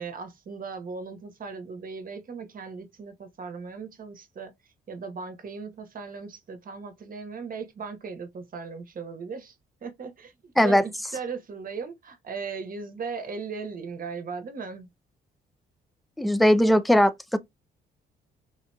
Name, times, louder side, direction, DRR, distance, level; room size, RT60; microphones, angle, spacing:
voice 1, 0.0-4.5 4.9-9.6 9.8-10.3 10.6-14.9, right 5 dB, 45° right, 1.0 m, -37 dB
voice 2, 16.2-17.4, equal, ahead, 0.4 m, -19 dB
3.6 x 2.8 x 2.3 m
cardioid pair, 90°, 20 cm